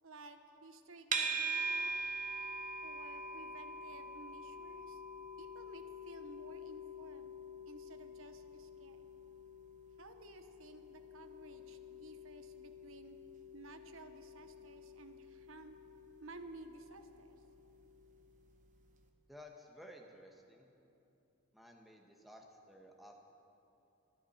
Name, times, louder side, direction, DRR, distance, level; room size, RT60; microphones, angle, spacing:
voice 1, 0.0-2.0 2.8-5.0 5.4-7.4 7.6-9.1 10.0-13.2 13.5-15.8 16.2-17.4, right 3 dB, 80° right, 8 dB, 1.0 m, -55 dB
sound 1, 1.1-18.3, right 3 dB, 40° right, 1.1 m, -44 dB
voice 2, 19.3-20.7 21.5-23.2, equal, ahead, 1 dB, 1.3 m, -55 dB
24.0 x 13.0 x 4.3 m, 2.9 s
head